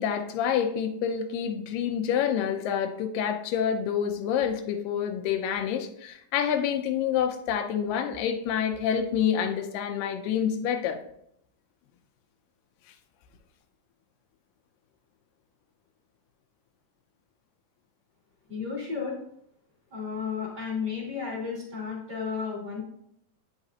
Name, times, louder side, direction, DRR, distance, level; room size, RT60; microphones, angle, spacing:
voice 1, 0.0-11.0, left 8 dB, 85° left, 6 dB, 2.3 m, -27 dB
voice 2, 18.5-19.2 19.9-22.8, left 5 dB, 35° right, -4 dB, 2.4 m, -33 dB
8.8 x 5.7 x 2.7 m, 0.74 s
omnidirectional pair, 3.8 m